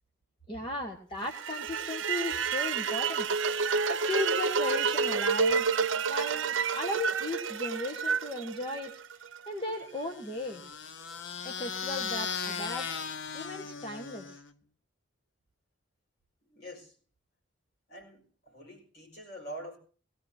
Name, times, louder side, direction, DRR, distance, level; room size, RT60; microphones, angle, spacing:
voice 1, 0.5-3.3 3.9-5.6 6.1-8.9 9.5-10.6 11.4-13.0 13.3-14.4, left 1 dB, 25° left, 2 dB, 1.3 m, -36 dB
sound 1, 1.3-9.4, right 5 dB, 80° right, 0.7 m, -29 dB
sound 2, 10.0-14.5, left 6 dB, 75° left, 0.8 m, -37 dB
voice 2, 16.5-16.9 17.9-19.8, right 1 dB, 55° left, 1 dB, 4.9 m, -45 dB
18.0 x 17.5 x 2.7 m, 0.40 s
head